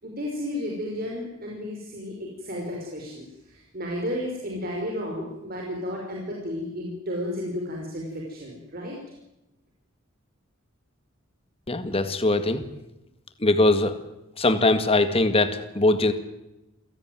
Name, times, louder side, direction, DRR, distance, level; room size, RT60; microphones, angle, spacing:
voice 1, 0.0-9.0, left 1 dB, 45° right, -1 dB, 5.1 m, -33 dB
voice 2, 11.7-12.6 13.4-14.0 14.4-16.1, left 2 dB, 30° left, 9 dB, 2.0 m, -21 dB
28.0 x 17.5 x 9.3 m, 0.92 s
head